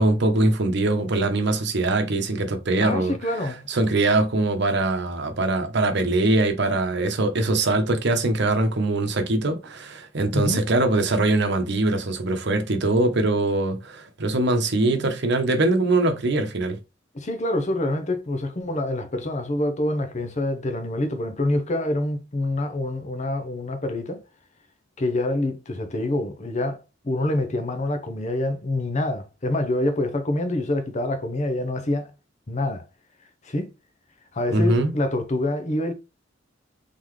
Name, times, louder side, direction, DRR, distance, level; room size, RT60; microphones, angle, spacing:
voice 1, 0.0-3.1 3.7-16.8 34.5-34.9, right 2 dB, 65° right, 0.9 m, -22 dB
voice 2, 2.8-3.6 10.3-10.7 17.1-24.2 25.0-32.1 32.5-32.8 33.4-33.7 34.3-35.9, left 1 dB, 40° left, 0.8 m, -26 dB
3.9 x 3.7 x 3.2 m
head